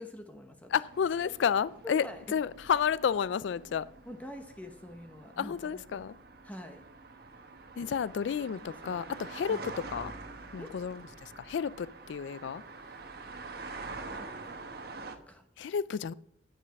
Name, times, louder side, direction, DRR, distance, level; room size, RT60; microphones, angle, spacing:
voice 1, 0.0-0.8 1.8-2.2 4.1-6.1 6.4-6.8 8.6-9.0 9.5-9.6 10.6-10.7 12.8-13.2 14.1-14.6 15.1-15.7, left 1 dB, 10° left, 0.9 m, -46 dB
voice 2, 0.7-2.1 2.3-3.9 5.4-6.1 7.8-10.1 10.5-12.6 15.6-16.1, left 7 dB, 75° left, 0.3 m, -31 dB
sound 1, 0.9-15.1, right 3 dB, 55° right, 1.2 m, -46 dB
9.7 x 9.2 x 6.4 m
head